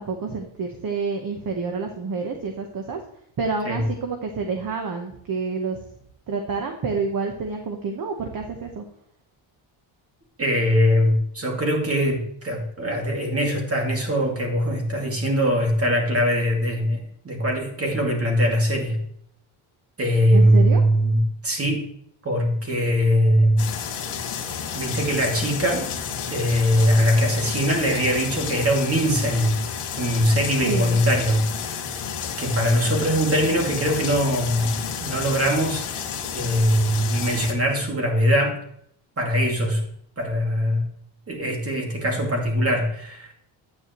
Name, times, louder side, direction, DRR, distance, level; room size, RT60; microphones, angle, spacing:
voice 1, 0.0-3.0 3.4-5.8 6.3-8.8 20.3-20.8 30.6-31.0, right 4 dB, 45° right, 4 dB, 1.1 m, -28 dB
voice 2, 10.4-17.0 17.2-19.0 20.0-21.8 22.2-23.6 24.7-25.9 26.3-29.6 30.0-31.4 32.4-34.7 35.0-35.9 36.3-38.6 39.2-39.8 40.2-40.8 41.3-43.3, equal, 30° right, 1 dB, 2.4 m, -21 dB
sound 1, 23.6-37.5, left 7 dB, 80° left, 1.9 m, -31 dB
9.5 x 9.4 x 3.0 m, 0.69 s
cardioid pair, 150°, 49 cm